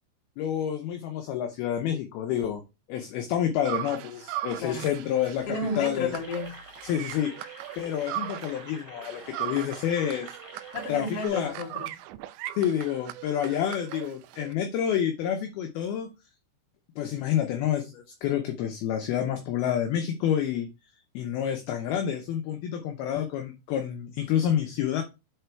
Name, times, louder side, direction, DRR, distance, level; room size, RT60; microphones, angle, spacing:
voice 1, 0.4-2.6 2.9-5.5 5.8-6.1 6.8-7.3 7.8-10.3 10.9-11.6 12.6-16.1 17.0-20.7 21.1-25.0, left 10 dB, 75° left, 2.3 m, -28 dB
sound 1, 3.7-8.7 9.0-14.5, right 15 dB, 80° right, 2.6 m, -39 dB
voice 2, 5.5-6.5 10.7-11.9, left 2 dB, 40° left, 2.4 m, -32 dB
sound 2, 6.2-11.3, right 1 dB, 30° right, 0.6 m, -47 dB
8.2 x 4.3 x 4.4 m
omnidirectional pair, 5.5 m